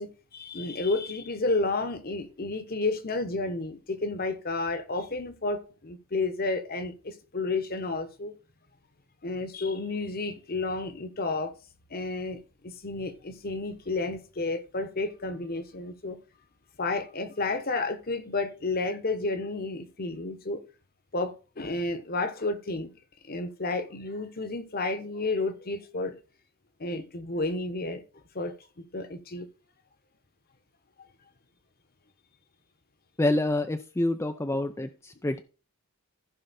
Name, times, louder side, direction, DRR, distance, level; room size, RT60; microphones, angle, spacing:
voice 1, 0.0-8.4 9.2-11.5 11.9-16.2 16.8-20.6 21.1-22.9 23.3-26.1 26.8-28.0 28.3-29.5, left 3 dB, 40° left, 1.1 m, -31 dB
voice 2, 33.2-35.4, left 1 dB, 10° left, 0.4 m, -27 dB
15.0 x 5.5 x 4.2 m
head